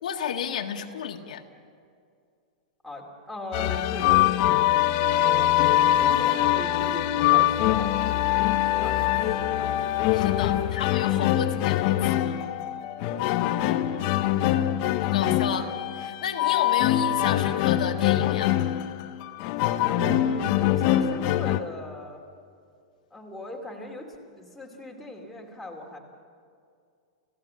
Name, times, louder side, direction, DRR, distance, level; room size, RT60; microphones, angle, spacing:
voice 1, 0.0-1.4 10.1-12.4 15.0-18.5, left 8 dB, 85° left, 2 dB, 1.8 m, -32 dB
voice 2, 2.8-5.5 5.8-9.9 14.1-14.9 19.8-22.2 23.1-26.0, left 1 dB, ahead, -2 dB, 2.7 m, -40 dB
sound 1, 3.5-21.6, left 13 dB, 40° left, 0.9 m, -23 dB
30.0 x 16.0 x 7.7 m, 2.3 s
supercardioid pair, 160°, 4 cm